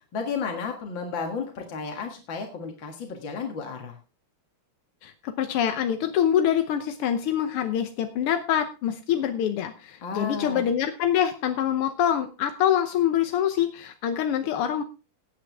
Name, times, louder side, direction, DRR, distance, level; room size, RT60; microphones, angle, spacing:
voice 1, 0.1-3.9 10.0-10.7, left 5 dB, 60° left, 2 dB, 2.4 m, -32 dB
voice 2, 5.0-14.8, left 10 dB, 90° left, 8 dB, 1.8 m, -25 dB
16.5 x 8.7 x 3.5 m, 0.32 s
omnidirectional pair, 2.4 m